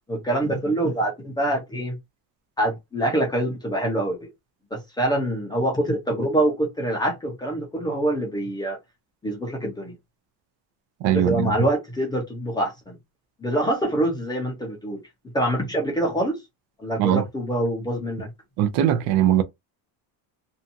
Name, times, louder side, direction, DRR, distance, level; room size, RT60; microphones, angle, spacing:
voice 1, 0.1-2.0 2.6-4.3 4.7-8.8 9.2-9.9 11.1-13.0 13.4-15.0 15.3-16.4 16.8-18.3, right 1 dB, 10° left, 0.5 m, -25 dB
voice 2, 11.0-11.5 17.0-17.2 18.6-19.4, right 11 dB, 55° right, 0.6 m, -20 dB
2.6 x 2.3 x 2.6 m
cardioid pair, 180°, 46 cm